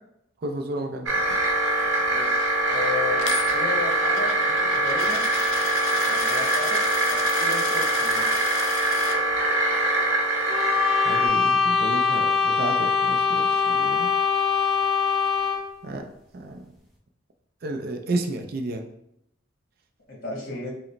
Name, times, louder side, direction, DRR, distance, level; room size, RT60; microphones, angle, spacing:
voice 1, 0.4-1.1 10.9-14.1 15.8-16.1 16.3-16.7 17.6-18.9, right 2 dB, 50° right, 4 dB, 0.4 m, -31 dB
sound 1, 1.1-11.3, right 2 dB, 75° right, 0.8 m, -23 dB
voice 2, 2.1-3.2 3.5-5.2 6.0-6.8 7.1-8.3 20.1-20.7, left 3 dB, 45° left, -3 dB, 1.3 m, -33 dB
Coin (dropping), 3.2-9.2, left 5 dB, 90° left, 0.5 m, -34 dB
sound 2, 10.5-15.8, left 5 dB, ahead, 0.6 m, -22 dB
4.9 x 2.0 x 3.1 m, 0.77 s
head